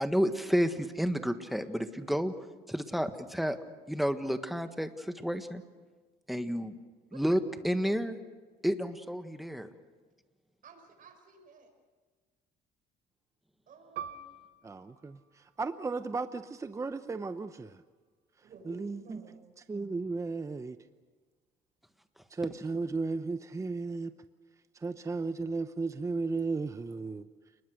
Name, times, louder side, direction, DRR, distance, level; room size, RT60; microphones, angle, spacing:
voice 1, 0.0-2.3 2.7-3.6 3.9-5.6 6.3-6.7 7.1-8.2 8.6-9.7, equal, ahead, 8 dB, 1.6 m, -30 dB
voice 2, 10.6-11.7 13.7-14.3 18.4-19.5, right 4 dB, 55° right, 5 dB, 6.0 m, -54 dB
Piano, 14.0-19.0 19.3-19.5 20.3-20.6, right 7 dB, 80° right, 0.9 m, -48 dB
voice 3, 14.6-17.8 18.4-20.8 22.3-24.1 24.7-27.3, right 3 dB, 20° right, 11 dB, 0.8 m, -35 dB
29.5 x 20.5 x 6.5 m, 1.4 s
cardioid pair, 110°, 17 cm